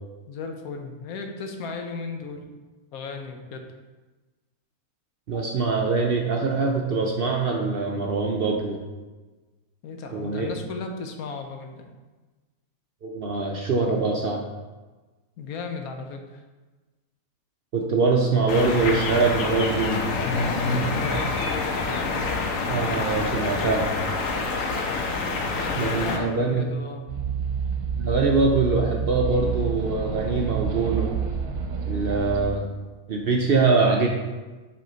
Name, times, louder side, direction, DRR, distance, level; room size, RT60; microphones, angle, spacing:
voice 1, 0.3-2.4 2.9-3.6 9.8-11.9 15.4-16.2 20.9-21.3 25.6-27.0, left 4 dB, 85° left, 4 dB, 1.2 m, -35 dB
voice 2, 5.3-8.8 10.1-10.5 13.0-14.4 17.7-20.0 22.7-23.9 25.8-26.7 28.0-31.1 31.9-32.6 33.1-34.1, right 4 dB, 55° right, 0 dB, 0.6 m, -23 dB
sound 1, 18.5-26.2, left 3 dB, 70° left, 1.1 m, -26 dB
sound 2, 27.1-32.5, right 6 dB, 75° right, 1.2 m, -28 dB
7.6 x 3.5 x 3.9 m, 1.2 s
omnidirectional pair, 1.5 m